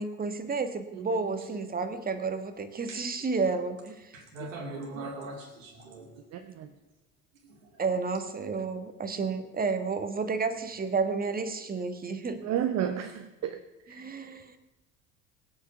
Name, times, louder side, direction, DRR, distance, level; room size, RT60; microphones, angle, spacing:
voice 1, 0.0-4.1 7.8-12.4 13.9-14.6, right 4 dB, 20° right, 9 dB, 1.5 m, -31 dB
sound 1, 2.9-3.3 3.8-6.5 7.3-8.2, right 2 dB, 75° right, 2.4 m, -41 dB
voice 2, 6.3-6.7 12.4-13.6 13.9-14.1, right 10 dB, 40° right, 8 dB, 0.9 m, -32 dB
19.0 x 8.6 x 5.7 m, 1.0 s
figure-of-eight pair, 70°, 40 cm